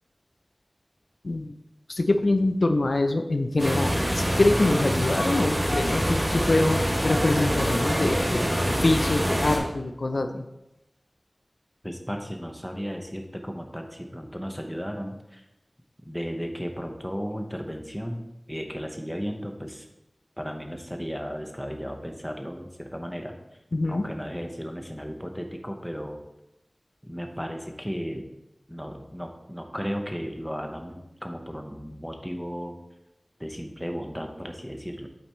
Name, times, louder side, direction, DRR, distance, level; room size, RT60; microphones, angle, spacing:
voice 1, 1.2-1.6 1.9-10.4 23.7-24.1, left 2 dB, 80° left, 7 dB, 0.6 m, -25 dB
sound 1, 3.6-9.6, equal, 20° right, 3.3 m, -25 dB
voice 2, 11.8-15.4 16.0-18.2 18.5-19.9 20.4-23.3 23.9-26.2 27.0-28.2 28.7-32.8 33.4-35.1, equal, ahead, 3 dB, 1.2 m, -35 dB
9.0 x 8.3 x 3.2 m, 0.90 s
wide cardioid pair, 50°, 0 cm